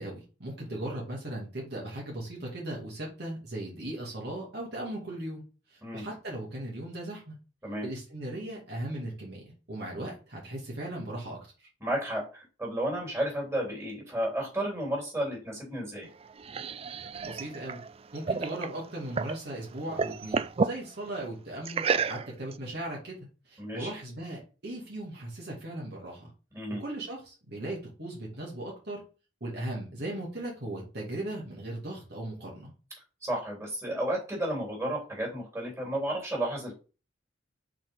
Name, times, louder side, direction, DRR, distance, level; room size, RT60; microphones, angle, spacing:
voice 1, 0.0-5.4 5.9-7.4 7.8-9.4 9.7-11.4 17.2-17.8 18.1-23.2 23.5-26.3 26.7-29.0 29.4-32.7, right 1 dB, 55° right, -2 dB, 2.3 m, -37 dB
voice 2, 11.8-16.1 23.6-23.9 26.5-26.8 33.2-36.7, right 1 dB, 15° right, -3 dB, 3.4 m, -32 dB
sound 1, 16.0-19.4 19.7-20.8 21.7-22.5, right 5 dB, 30° right, 0.3 m, -31 dB
6.1 x 4.3 x 5.4 m, 0.34 s
head